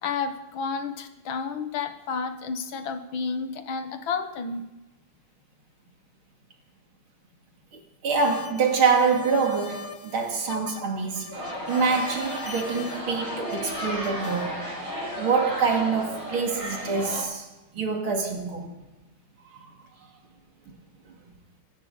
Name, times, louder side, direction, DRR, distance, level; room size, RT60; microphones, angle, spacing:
voice 1, 0.0-4.6, left 5 dB, 75° left, 2.0 m, -31 dB
voice 2, 8.0-11.4 11.7-14.6 15.2-17.5 17.7-18.7 20.7-20.8, right 5 dB, 90° right, 3.1 m, -25 dB
sound 1, 8.1-14.5, left 4 dB, 40° left, 0.7 m, -41 dB
sound 2, 11.3-17.2, equal, 60° right, 6.2 m, -34 dB
26.0 x 12.5 x 4.0 m
omnidirectional pair, 2.2 m